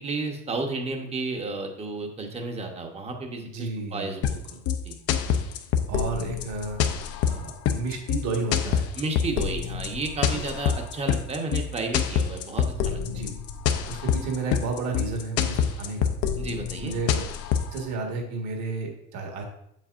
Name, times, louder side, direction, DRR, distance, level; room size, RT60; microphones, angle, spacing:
voice 1, 0.0-4.4 4.8-5.0 9.0-13.2 16.4-16.9, right 3 dB, 20° right, 3 dB, 1.0 m, -32 dB
voice 2, 3.4-4.2 4.5-4.6 5.1-5.4 5.9-6.8 7.2-8.9 10.3-10.4 13.0-13.3 13.9-16.1 16.8-17.2 17.7-19.4, right 3 dB, 55° right, 1 dB, 1.6 m, -32 dB
sound 1, 4.2-17.8, left 8 dB, 45° left, 0.6 m, -26 dB
7.6 x 7.4 x 2.5 m, 0.75 s
cardioid pair, 155°, 33 cm